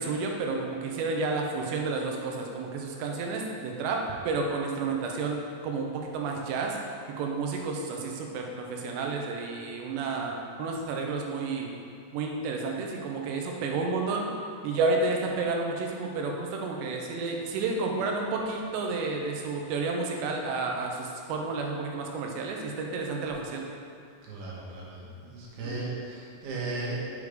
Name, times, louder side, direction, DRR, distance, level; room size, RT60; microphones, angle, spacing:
voice 1, 0.0-6.8 7.2-11.7 12.1-14.3 14.6-23.7 25.6-25.9, right 3 dB, 85° right, 1 dB, 3.0 m, -31 dB
voice 2, 24.2-27.1, right 2 dB, 70° right, -5 dB, 3.1 m, -36 dB
6.8 x 5.0 x 4.9 m, 2.3 s
omnidirectional pair, 4.8 m